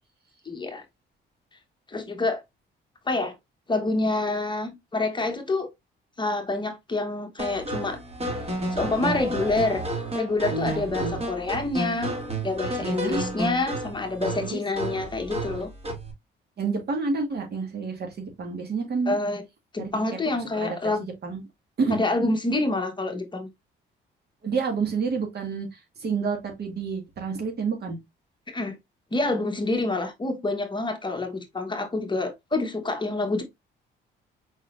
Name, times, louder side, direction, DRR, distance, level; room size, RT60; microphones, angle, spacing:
voice 1, 0.4-0.8 1.9-2.4 3.1-3.3 3.7-5.7 6.2-8.0 8.7-9.8 10.1-12.2 12.4-15.7 19.1-19.4 19.7-21.1 21.9-23.5 28.5-28.7 29.1-33.4, left 2 dB, 25° left, 1.1 m, -27 dB
sound 1, 7.4-16.1, right 1 dB, 30° right, 2.6 m, -31 dB
voice 2, 10.5-11.2 12.8-13.2 14.2-14.6 16.6-19.2 19.8-19.9 20.6-21.4 21.8-22.0 24.4-25.7 26.0-28.0, right 4 dB, 55° right, 1.7 m, -29 dB
4.8 x 4.0 x 2.5 m
cardioid pair, 90°, 20 cm